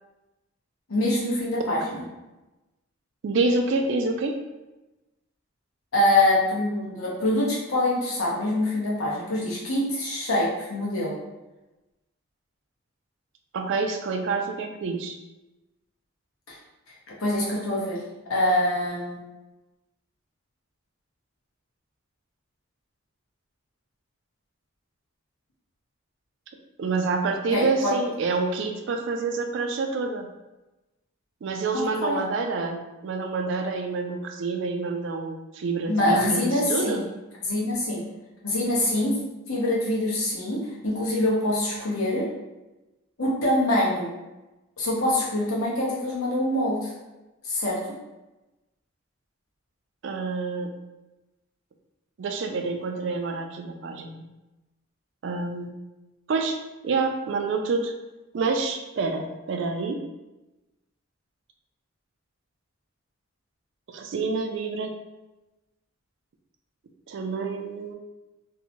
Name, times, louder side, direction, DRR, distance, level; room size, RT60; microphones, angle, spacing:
voice 1, 0.9-2.0 5.9-11.1 16.5-16.6 17.2-18.0 18.3-19.2 27.5-27.9 31.7-32.2 35.9-37.0 37.4-38.0 38.4-39.2 39.5-42.3 43.2-44.1 44.8-46.9 47.4-47.8, left 1 dB, 85° left, -5 dB, 0.9 m, -24 dB
voice 2, 3.2-4.4 13.5-15.2 26.8-30.3 31.4-37.1 50.0-50.7 52.2-54.2 55.2-55.7 56.3-57.9 58.3-60.0 63.9-65.0 67.1-67.9, right 4 dB, 60° right, 5 dB, 0.3 m, -27 dB
2.6 x 2.1 x 2.9 m, 1.0 s
head